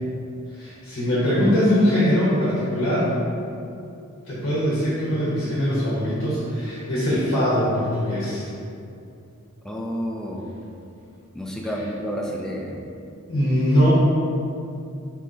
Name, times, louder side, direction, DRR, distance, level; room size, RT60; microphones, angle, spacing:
voice 1, 0.5-3.1 4.3-8.5 13.3-13.9, equal, 65° left, -9 dB, 0.9 m, -22 dB
voice 2, 9.6-10.6 11.3-12.8, equal, 5° left, -1 dB, 0.3 m, -30 dB
4.5 x 2.8 x 3.8 m, 2.5 s
head